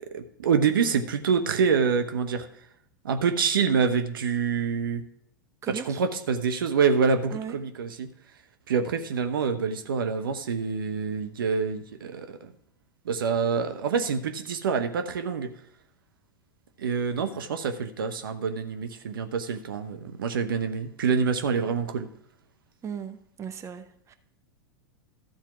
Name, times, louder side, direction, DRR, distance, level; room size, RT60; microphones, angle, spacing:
voice 1, 0.1-2.5 3.0-5.0 5.7-8.1 8.7-12.5 13.0-15.5 16.8-22.1, right 6 dB, 75° right, 8 dB, 0.9 m, -26 dB
voice 2, 5.6-6.0 7.3-7.5 22.8-24.1, right 7 dB, 25° right, 9 dB, 0.8 m, -37 dB
13.0 x 4.4 x 5.9 m, 0.67 s
hypercardioid pair, 100°, 12 cm